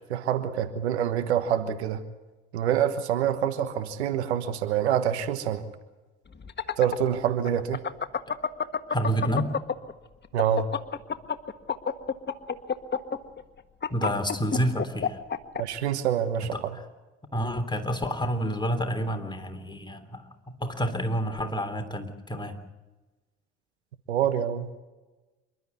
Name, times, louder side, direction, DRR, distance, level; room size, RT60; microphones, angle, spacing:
voice 1, 0.1-2.0 2.5-5.6 6.8-7.8 10.3-10.7 15.6-16.8 24.1-24.7, right 9 dB, 85° right, 10 dB, 1.4 m, -26 dB
sound 1, 6.3-9.9 10.2-15.6, left 6 dB, 30° left, 1.7 m, -28 dB
voice 2, 8.9-9.5 13.9-15.2 16.5-16.6 17.3-22.6, equal, 15° left, 6 dB, 3.3 m, -29 dB
28.0 x 13.0 x 9.5 m, 1.1 s
hypercardioid pair, 60°, 33 cm